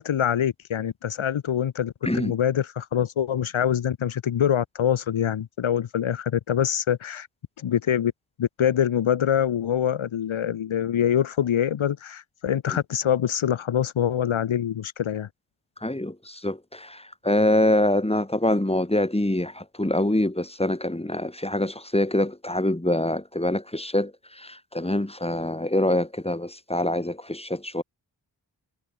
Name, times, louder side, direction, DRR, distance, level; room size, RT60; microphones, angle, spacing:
voice 1, 0.0-7.3 7.6-8.1 8.4-15.3, left 9 dB, 80° left, 1.3 m, -25 dB
voice 2, 2.0-2.3 15.8-27.8, left 1 dB, 10° left, 6.8 m, -25 dB
cardioid pair, 65°, 47 cm